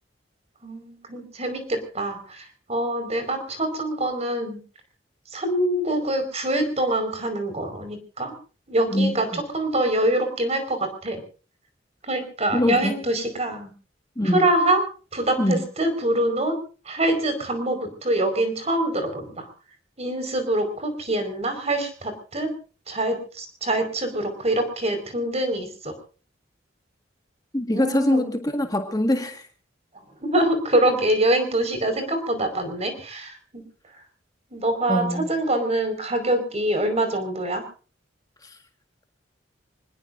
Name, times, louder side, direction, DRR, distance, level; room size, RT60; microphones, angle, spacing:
voice 1, 0.6-4.6 5.3-8.3 8.7-11.2 12.0-13.7 14.2-14.8 15.1-16.5 16.8-19.5 20.0-22.5 22.9-25.9 27.7-28.3 30.2-33.6 34.5-37.6, right 1 dB, 35° right, 8 dB, 4.9 m, -25 dB
voice 2, 8.9-9.4 12.5-13.0 14.2-14.4 15.4-15.6 27.5-29.5 34.9-35.3 38.4-38.6, left 1 dB, 20° left, 5 dB, 1.7 m, -23 dB
26.5 x 20.0 x 2.6 m, 0.37 s
head